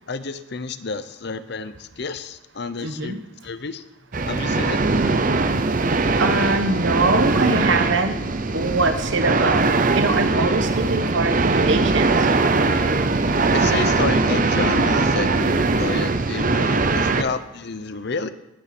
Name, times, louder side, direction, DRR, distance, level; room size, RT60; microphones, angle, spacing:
voice 1, 0.0-3.2 3.4-3.8 4.3-4.8 13.5-18.3, left 4 dB, 55° left, 13 dB, 0.7 m, -30 dB
voice 2, 2.8-3.2 6.2-8.2 8.5-9.6 9.9-12.3, right 3 dB, 65° right, 8 dB, 1.2 m, -23 dB
sound 1, 4.1-17.2, right 3 dB, 40° right, 0.7 m, -20 dB
19.0 x 6.9 x 6.0 m, 0.99 s
head